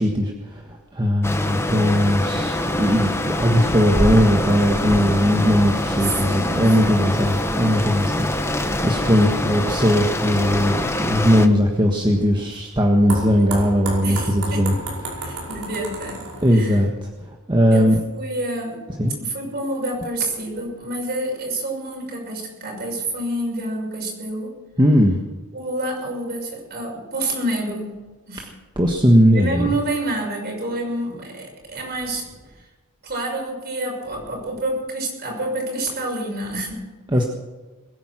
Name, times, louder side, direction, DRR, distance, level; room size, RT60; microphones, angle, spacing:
voice 1, 0.0-14.8 15.1-15.5 16.4-18.0 19.0-19.1 24.8-25.2 28.7-29.7 37.1-37.2, equal, 20° right, 1 dB, 1.5 m, -19 dB
sound 1, 1.2-11.5, left 1 dB, 10° left, 1.1 m, -24 dB
voice 2, 5.9-7.0 13.4-13.5 14.0-14.8 15.2-16.8 17.7-18.9 19.2-24.6 25.5-28.0 28.3-28.5 29.3-32.2 33.0-36.9, right 1 dB, 45° right, 0 dB, 6.4 m, -28 dB
sound 2, 11.5-16.9, right 2 dB, 75° right, 5.3 m, -33 dB
21.5 x 10.5 x 6.2 m, 1.2 s
head